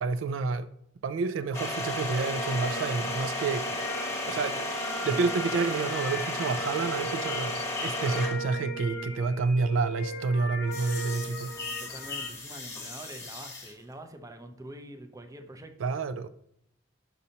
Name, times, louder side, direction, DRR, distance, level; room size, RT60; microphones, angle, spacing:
voice 1, 0.0-0.7 1.0-3.8 4.3-11.5 15.8-16.3, right 4 dB, 75° right, 0.4 m, -29 dB
sound 1, 1.5-8.6 10.7-13.7, left 1 dB, 15° left, 1.1 m, -34 dB
sound 2, 2.0-12.3, equal, 55° left, 0.7 m, -38 dB
voice 2, 11.8-15.7, right 1 dB, 15° right, 0.6 m, -45 dB
6.3 x 5.5 x 2.8 m
head